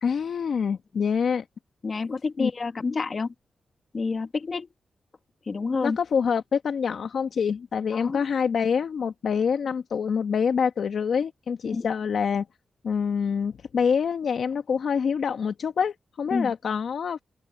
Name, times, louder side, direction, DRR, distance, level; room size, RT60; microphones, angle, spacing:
voice 1, 0.0-1.4 2.4-2.5 5.8-12.4 12.8-17.2, left 6 dB, 70° left, 1.3 m, -26 dB
voice 2, 1.8-3.3 3.9-4.7 5.5-6.0 7.9-8.2 11.6-11.9 16.3-16.5, left 4 dB, 45° left, 2.1 m, -28 dB
open air
cardioid pair, 70°, 0 cm